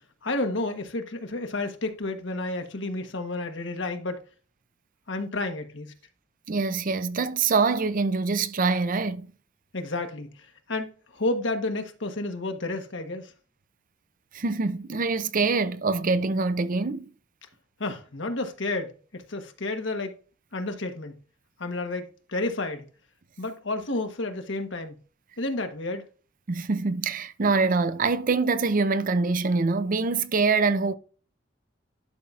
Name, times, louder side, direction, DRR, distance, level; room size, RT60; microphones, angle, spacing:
voice 1, 0.0-4.2 5.1-5.9 9.7-13.3 17.8-20.1 20.5-21.2 21.6-22.9 23.4-25.0 25.4-26.1, left 2 dB, 75° left, 1.3 m, -31 dB
voice 2, 6.5-9.3 14.3-17.1 26.5-30.9, right 4 dB, 45° right, 0.5 m, -24 dB
11.5 x 5.7 x 2.4 m
head